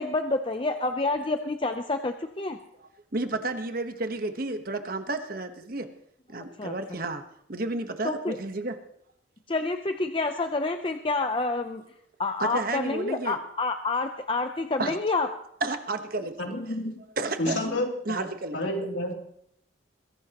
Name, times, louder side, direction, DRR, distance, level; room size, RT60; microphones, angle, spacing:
voice 1, 0.0-2.6 6.6-7.0 8.0-8.4 9.5-11.8 12.2-15.3 17.7-17.8, left 3 dB, 25° left, 6 dB, 0.6 m, -28 dB
voice 2, 2.8-5.9 6.3-7.2 7.5-8.8 12.4-13.4 14.8-15.0 15.6-16.5 17.2-17.6 18.0-18.9, right 2 dB, 50° right, 8 dB, 1.2 m, -32 dB
voice 3, 16.4-17.0 17.4-18.3 18.5-19.1, left 1 dB, 70° left, 1 dB, 2.9 m, -30 dB
22.0 x 16.5 x 3.0 m, 0.70 s
head